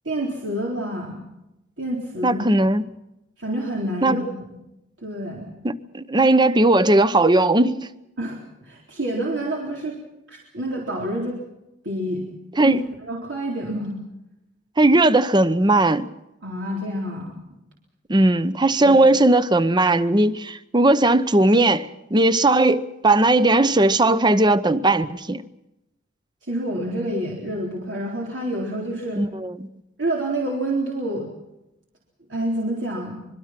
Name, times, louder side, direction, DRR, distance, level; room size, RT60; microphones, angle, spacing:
voice 1, 0.0-1.2 1.8-2.4 3.4-4.2 5.0-5.5 8.2-10.0 10.3-11.4 11.8-12.3 12.6-12.7 13.0-13.9 16.4-17.4 18.8-19.0 26.4-29.2 30.0-31.3 32.3-33.2, right 1 dB, 75° right, 3.9 m, -28 dB
voice 2, 2.2-2.9 4.0-4.2 5.6-7.9 12.6-12.8 14.8-16.1 18.1-25.4 29.2-29.7, right 2 dB, 25° right, 0.8 m, -18 dB
25.5 x 22.5 x 6.0 m
head